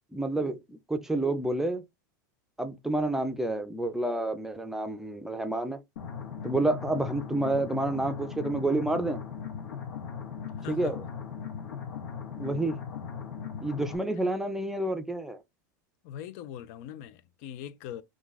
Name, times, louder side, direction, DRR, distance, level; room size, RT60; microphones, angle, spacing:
voice 1, 0.1-1.8 2.6-5.8 6.4-9.2 10.7-11.0 12.4-12.8 13.6-15.4, right 2 dB, 5° right, 0.5 m, -29 dB
sound 1, 6.0-14.0, left 7 dB, 75° left, 0.9 m, -38 dB
voice 2, 10.6-11.0 16.0-18.0, left 10 dB, 55° left, 0.5 m, -41 dB
2.4 x 2.4 x 3.8 m
hypercardioid pair, 95°, 10 cm